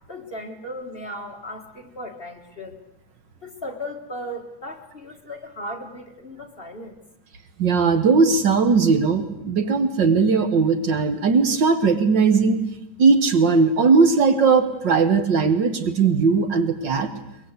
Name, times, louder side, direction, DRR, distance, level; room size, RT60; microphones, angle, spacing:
voice 1, 0.1-2.8 3.4-7.0, left 1 dB, 30° left, 3 dB, 1.8 m, -36 dB
voice 2, 7.6-12.6 13.0-17.1, right 4 dB, 65° right, 9 dB, 2.1 m, -18 dB
23.0 x 21.0 x 8.1 m, 0.88 s
omnidirectional pair, 2.2 m